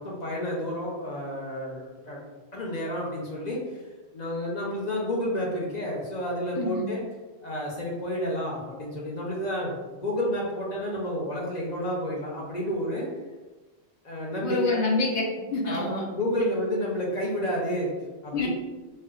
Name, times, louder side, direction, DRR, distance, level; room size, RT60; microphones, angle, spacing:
voice 1, 0.0-2.2 2.5-3.8 4.1-7.0 7.4-13.1 14.0-14.8 15.6-17.9 18.2-18.5, equal, 50° left, -3 dB, 0.6 m, -30 dB
voice 2, 6.6-6.9 14.4-16.0 18.3-18.5, left 3 dB, 80° left, -1 dB, 0.9 m, -27 dB
4.2 x 2.1 x 2.4 m, 1.2 s
omnidirectional pair, 1.1 m